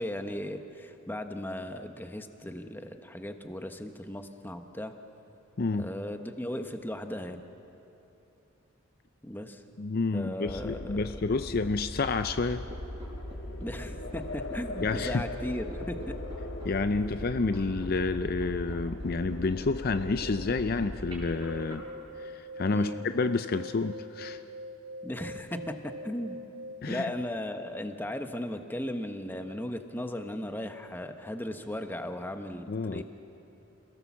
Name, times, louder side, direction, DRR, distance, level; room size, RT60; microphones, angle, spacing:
voice 1, 0.0-4.9 5.8-7.4 9.2-9.6 10.1-11.1 13.6-16.1 22.7-23.0 25.0-26.4 26.9-33.0, left 1 dB, 10° left, 7 dB, 1.0 m, -37 dB
voice 2, 5.6-5.9 9.8-12.6 14.8-15.2 16.6-21.8 22.2-24.4 26.8-27.1 32.7-33.0, left 3 dB, 45° left, 10 dB, 0.5 m, -29 dB
sound 1, 10.5-21.4, left 1 dB, 65° left, 1.6 m, -39 dB
sound 2, 12.7-21.8, right 1 dB, 20° right, 5.1 m, -45 dB
sound 3, 21.3-27.3, equal, 50° right, 1.1 m, -43 dB
28.5 x 17.5 x 7.2 m, 2.9 s
head